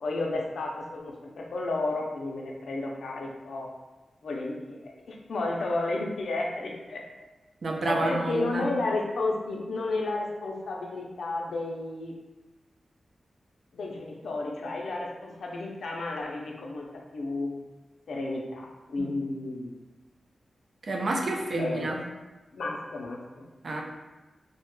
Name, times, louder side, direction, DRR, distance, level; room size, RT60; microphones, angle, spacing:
voice 1, 0.0-3.7 4.2-7.3 7.8-12.1 13.7-17.5 18.1-19.8 21.5-22.0 22.5-23.5, left 2 dB, 80° left, 0 dB, 0.4 m, -32 dB
voice 2, 7.6-8.7 19.0-19.1 20.8-22.0 23.6-23.8, right 2 dB, 55° right, 1 dB, 0.3 m, -29 dB
2.1 x 2.0 x 3.0 m, 1.1 s
wide cardioid pair, 145°, 0 cm